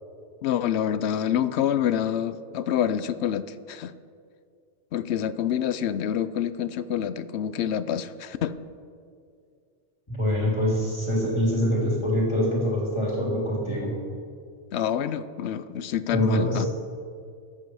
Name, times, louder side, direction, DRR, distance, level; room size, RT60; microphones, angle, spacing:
voice 1, 0.4-3.9 4.9-8.6 14.7-16.7, left 9 dB, 65° left, 13 dB, 0.8 m, -27 dB
voice 2, 10.2-13.9 16.1-16.7, equal, 20° left, -4 dB, 3.1 m, -24 dB
19.5 x 7.9 x 4.7 m, 2.3 s
omnidirectional pair, 1.3 m